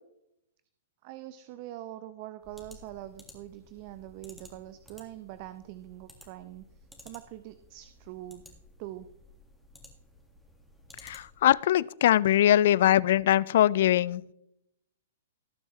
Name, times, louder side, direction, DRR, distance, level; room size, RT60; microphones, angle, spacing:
voice 1, 1.0-8.4 8.8-9.1, right 14 dB, 45° right, 0.6 m, -44 dB
sound 1, 2.4-11.6, left 1 dB, ahead, 1.9 m, -55 dB
voice 2, 11.0-14.3, left 12 dB, 60° left, 0.3 m, -22 dB
18.0 x 7.0 x 3.2 m
hypercardioid pair, 135°, 0 cm